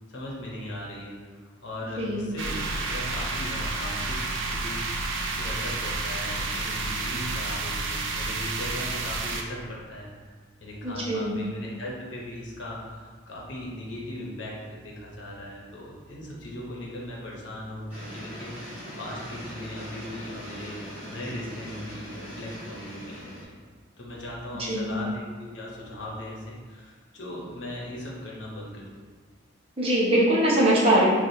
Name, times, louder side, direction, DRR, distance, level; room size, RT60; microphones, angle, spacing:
voice 1, 0.1-4.2 4.5-4.8 5.4-10.1 10.6-20.8 21.1-23.5 24.0-28.8, left 1 dB, 70° left, -4 dB, 0.9 m, -38 dB
sound 1, 2.4-9.4, right 3 dB, 75° right, 0.4 m, -30 dB
voice 2, 10.8-11.3 24.5-24.9 29.8-31.1, right 1 dB, 30° right, -7 dB, 0.8 m, -22 dB
sound 2, 17.9-23.4, equal, 10° right, 1.4 m, -41 dB
6.0 x 2.4 x 2.7 m, 1.5 s
head